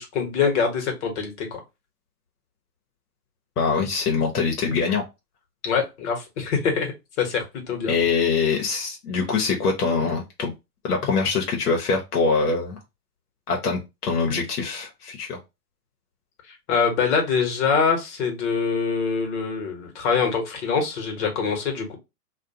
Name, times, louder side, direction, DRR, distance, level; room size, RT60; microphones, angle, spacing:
voice 1, 0.0-1.6 5.6-7.9 16.7-22.0, left 5 dB, 50° left, 1.1 m, -24 dB
voice 2, 3.6-5.0 7.9-10.5 10.8-12.8 13.5-15.4, left 4 dB, 75° left, 0.9 m, -23 dB
2.4 x 2.2 x 2.7 m
hypercardioid pair, 120°, 47 cm